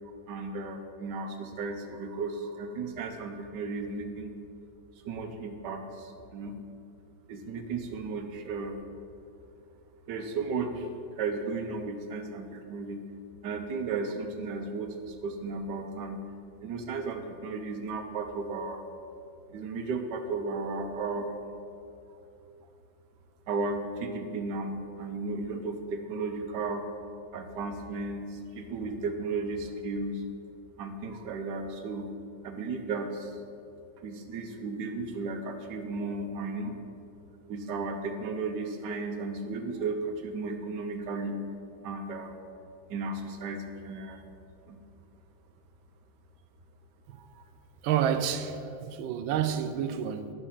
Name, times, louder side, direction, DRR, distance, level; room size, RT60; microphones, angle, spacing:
voice 1, 0.3-4.3 5.0-6.6 7.3-8.8 10.1-10.9 11.2-13.0 13.4-16.2 16.6-18.8 19.5-21.4 23.5-26.8 27.3-30.2 30.8-32.1 32.4-33.3 34.0-36.7 37.5-41.4 41.8-42.3 42.9-44.2 44.7-44.8 47.1-47.4, right 3 dB, 65° right, 1.4 m, -34 dB
voice 2, 47.8-50.3, right 9 dB, 85° right, 1.4 m, -29 dB
9.9 x 5.4 x 7.2 m
omnidirectional pair, 2.2 m